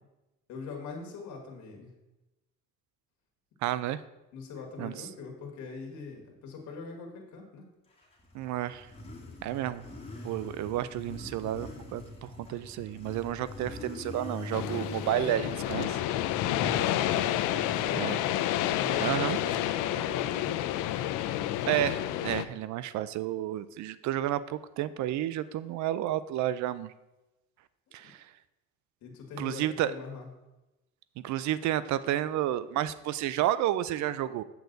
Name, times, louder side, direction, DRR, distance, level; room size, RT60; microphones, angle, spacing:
voice 1, 0.5-1.9 4.3-7.7 16.5-17.1 17.7-18.1 18.7-20.6 27.9-28.0 29.0-30.3, left 4 dB, 70° left, 1 dB, 1.7 m, -42 dB
voice 2, 3.6-4.0 4.8-5.1 8.3-8.9 9.4-9.8 10.2-16.0 18.0-18.2 19.0-19.4 21.7-26.9 27.9-28.3 29.4-29.9 31.2-34.4, right 12 dB, 70° right, 16 dB, 0.5 m, -31 dB
Motorcycle, 8.0-20.7, left 1 dB, 20° left, 2.0 m, -44 dB
sound 1, 14.5-22.5, left 12 dB, 90° left, 0.5 m, -29 dB
8.0 x 7.0 x 3.9 m, 1.0 s
cardioid pair, 110°, 30 cm